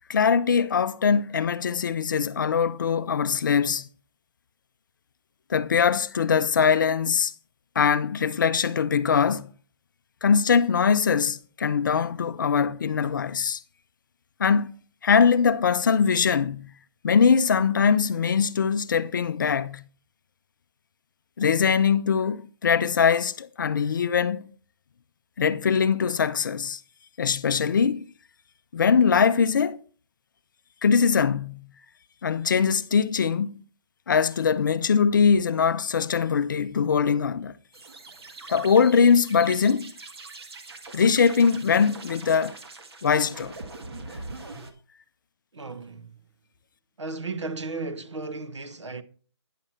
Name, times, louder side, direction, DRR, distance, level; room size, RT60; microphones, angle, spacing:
voice 1, 0.1-3.9 5.5-7.3 7.8-9.5 10.2-13.6 14.4-14.7 15.0-16.7 17.0-19.8 21.4-24.5 25.4-26.8 27.2-28.1 28.7-29.8 30.8-31.7 32.2-33.6 34.1-37.5 38.5-39.9 40.9-42.5 43.0-43.5, left 6 dB, 45° left, 0.4 m, -22 dB
sound 1, 37.7-44.7, right 3 dB, 60° right, 1.6 m, -42 dB
voice 2, 45.5-46.2 47.0-49.0, right 3 dB, 80° right, 1.1 m, -35 dB
10.0 x 6.2 x 4.2 m
figure-of-eight pair, 155°, 15 cm